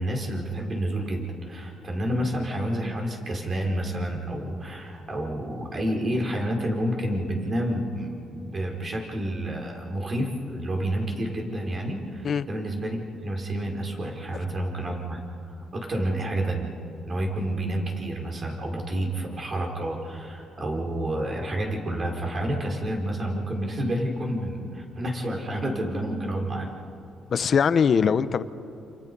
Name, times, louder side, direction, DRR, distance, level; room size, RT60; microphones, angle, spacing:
voice 1, 0.0-16.7 17.0-26.7, right 1 dB, 40° right, 1 dB, 4.8 m, -29 dB
voice 2, 27.3-28.4, left 6 dB, 50° left, 13 dB, 0.9 m, -21 dB
29.0 x 28.5 x 5.5 m, 2.7 s
cardioid pair, 90°, 0 cm